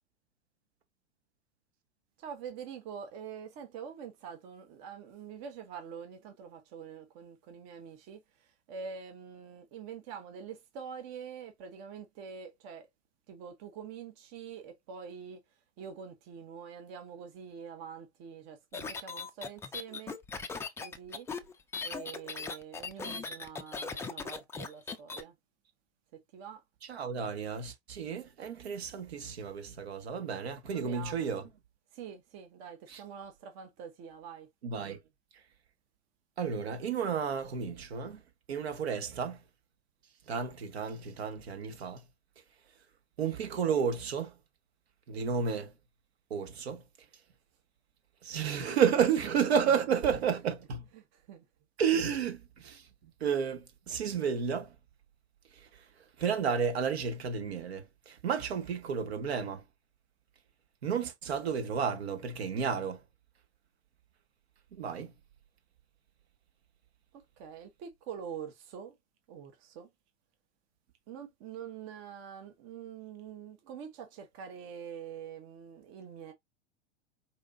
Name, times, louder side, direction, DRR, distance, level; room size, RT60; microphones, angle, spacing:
voice 1, 2.2-12.9 13.3-15.4 15.8-20.2 20.8-21.3 21.8-25.3 26.1-26.6 30.7-31.4 31.9-34.5 49.0-49.3 50.1-50.3 50.9-51.4 67.1-68.9 69.3-69.9 71.1-76.3, right 7 dB, 40° right, 1.1 m, -45 dB
sound 1, 18.7-25.2, left 4 dB, 10° left, 0.4 m, -39 dB
voice 2, 26.9-31.4 32.9-33.0 34.6-35.0 36.4-38.2 38.5-39.4 40.3-42.0 43.2-44.4 45.1-45.7 46.3-46.8 48.2-50.9 51.8-52.9 53.2-54.7 55.5-55.9 56.2-59.6 60.8-63.0 64.7-65.1, right 7 dB, 65° right, 1.4 m, -32 dB
4.9 x 2.9 x 2.5 m
figure-of-eight pair, 100°, 34 cm